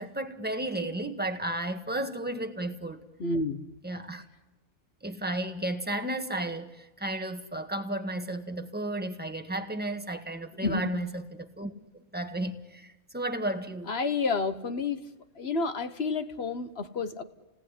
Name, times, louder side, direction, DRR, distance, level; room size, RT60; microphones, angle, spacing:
voice 1, 0.0-3.0 3.8-4.2 5.0-13.9, right 1 dB, 10° right, 6 dB, 1.4 m, -33 dB
voice 2, 3.2-3.6 10.6-10.8 13.9-15.0 15.4-17.2, left 3 dB, 55° left, 10 dB, 1.4 m, -30 dB
29.5 x 18.0 x 10.0 m, 1.1 s
omnidirectional pair, 1.3 m